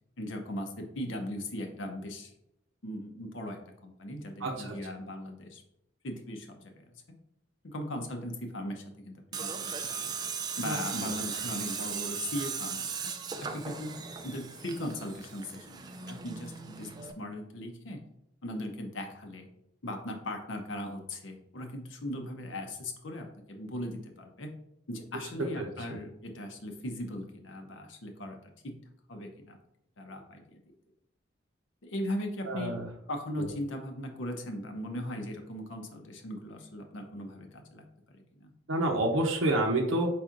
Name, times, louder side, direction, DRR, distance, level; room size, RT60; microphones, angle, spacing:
voice 1, 0.2-2.3 2.8-5.6 6.0-6.7 7.6-10.2 10.6-13.1 13.4-14.0 14.2-18.0 18.4-19.5 19.8-24.5 24.9-28.4 28.6-28.8 29.1-29.6 30.0-30.6 31.8-32.7 33.1-38.5, left 1 dB, 70° left, 3 dB, 0.8 m, -38 dB
voice 2, 4.4-4.8 10.6-10.8 11.0-11.1 25.6-26.0 32.5-32.8 33.4-33.5 38.7-40.1, right 1 dB, 90° right, 1 dB, 0.7 m, -29 dB
Tools, 9.3-17.1, right 6 dB, 20° right, 0.3 m, -37 dB
4.6 x 4.2 x 2.5 m, 0.81 s
head